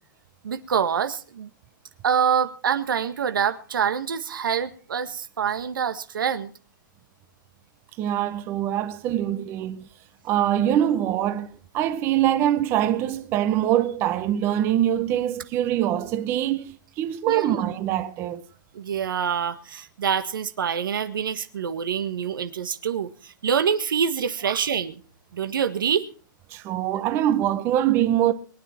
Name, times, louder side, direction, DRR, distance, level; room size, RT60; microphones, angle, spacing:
voice 1, 0.4-1.5 2.0-6.5 17.3-17.6 18.7-24.9 25.3-26.1, right 7 dB, 75° right, 1.6 m, -26 dB
voice 2, 8.0-9.8 10.2-18.4 24.4-24.6 26.5-28.3, right 11 dB, 20° right, 0.8 m, -24 dB
22.5 x 10.0 x 4.4 m
hypercardioid pair, 160°, 11 cm